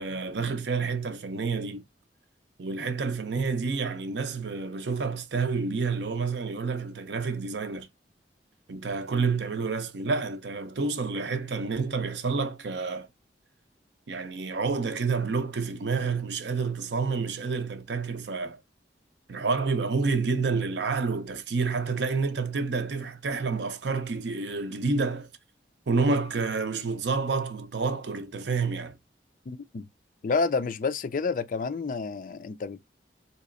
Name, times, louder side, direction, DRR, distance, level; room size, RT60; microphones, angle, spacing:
voice 1, 0.0-1.8 2.6-7.9 8.7-13.1 14.1-18.6 19.3-25.3 25.9-29.0, right 4 dB, 75° right, 0.6 m, -29 dB
voice 2, 29.5-29.9 30.2-32.8, left 4 dB, 50° left, 0.4 m, -29 dB
4.0 x 2.9 x 2.4 m
head